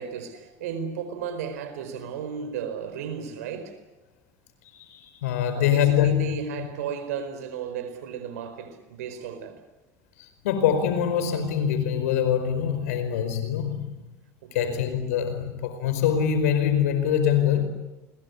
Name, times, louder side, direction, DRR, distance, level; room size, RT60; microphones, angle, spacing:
voice 1, 0.0-3.8 5.5-9.6 14.4-14.9, right 7 dB, 85° right, 4.6 m, -34 dB
voice 2, 4.7-6.7 10.2-14.1 14.5-17.7, left 9 dB, 85° left, 4.9 m, -24 dB
30.0 x 22.5 x 8.4 m
supercardioid pair, 85°, 8 cm